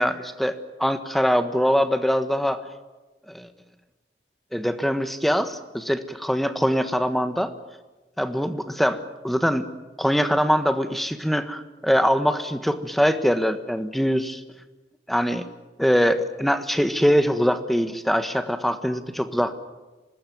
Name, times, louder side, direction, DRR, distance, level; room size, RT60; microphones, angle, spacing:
voice 1, 0.0-2.6 3.3-3.5 4.5-7.5 8.2-9.7 10.0-14.4 15.1-15.5 15.8-19.5, equal, ahead, 9 dB, 1.3 m, -23 dB
25.5 x 19.5 x 9.3 m, 1.2 s
head